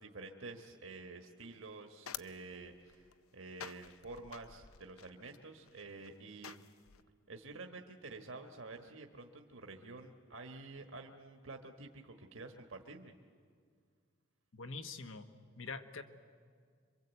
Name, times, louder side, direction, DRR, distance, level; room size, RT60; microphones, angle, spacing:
voice 1, 0.0-6.7 7.3-13.2, right 3 dB, 70° right, 4 dB, 1.4 m, -49 dB
sound 1, 1.4-7.0, left 9 dB, 90° left, 0.7 m, -52 dB
voice 2, 14.5-15.3 15.6-16.0, left 4 dB, 75° left, 8 dB, 1.3 m, -44 dB
26.5 x 24.0 x 8.2 m, 2.1 s
head